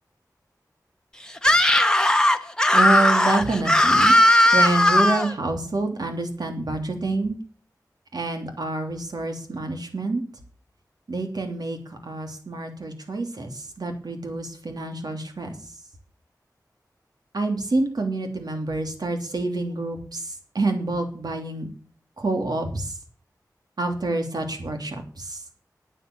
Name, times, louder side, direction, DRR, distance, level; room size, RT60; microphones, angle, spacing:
Screaming, 1.4-5.3, left 1 dB, 10° left, 1.3 m, -17 dB
voice 1, 2.7-4.1 4.5-7.3 8.1-10.2 11.1-15.5 17.3-21.7 22.2-23.0 23.8-25.4, right 2 dB, 70° right, 4 dB, 3.1 m, -27 dB
9.5 x 9.2 x 9.0 m, 0.43 s
wide cardioid pair, 50°, 7 cm